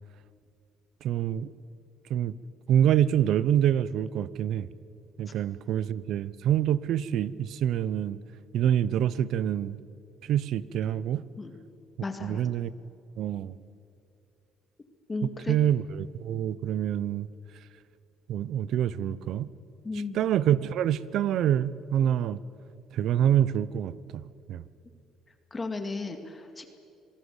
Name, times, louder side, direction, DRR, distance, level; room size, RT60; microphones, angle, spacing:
voice 1, 1.0-1.5 2.1-2.3 2.7-4.7 5.2-8.2 8.5-9.8 10.3-11.2 12.2-12.7 13.2-13.5 15.5-17.3 18.3-19.5 20.1-22.4 22.9-24.6, right 10 dB, 65° right, 19 dB, 0.8 m, -26 dB
voice 2, 12.0-12.4 15.1-15.6 19.8-20.2 25.5-26.8, left 3 dB, 20° left, 7 dB, 2.2 m, -34 dB
27.0 x 18.5 x 8.2 m, 2.5 s
cardioid pair, 110°, 0 cm